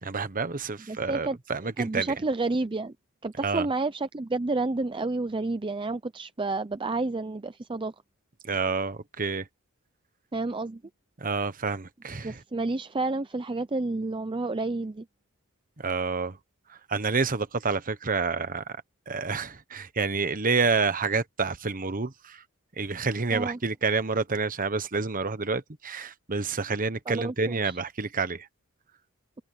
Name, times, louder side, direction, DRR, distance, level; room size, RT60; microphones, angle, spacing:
voice 1, 0.0-2.1 3.4-3.7 8.4-9.5 11.2-12.4 15.8-16.4 16.7-22.4 22.8-28.5, right 4 dB, 40° right, 1.2 m, -29 dB
voice 2, 0.9-1.4 1.8-2.9 3.2-7.9 10.3-10.8 12.2-15.0 23.3-23.6 27.1-27.6, right 3 dB, 20° right, 0.5 m, -30 dB
head